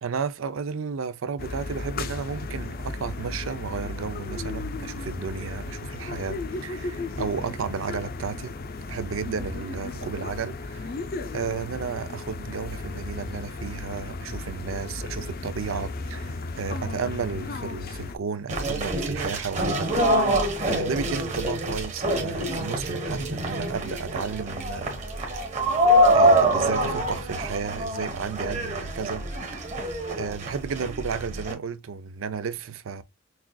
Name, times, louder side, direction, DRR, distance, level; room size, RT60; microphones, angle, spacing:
voice 1, 0.0-8.5 8.9-11.0 11.3-25.5 26.1-29.3 29.5-29.6 30.1-33.0, right 5 dB, 85° right, 0.5 m, -33 dB
sound 1, 1.4-18.2, left 3 dB, 50° left, 0.5 m, -35 dB
sound 2, 18.5-31.5, right 1 dB, 35° right, 1.2 m, -25 dB
6.2 x 2.4 x 2.2 m
head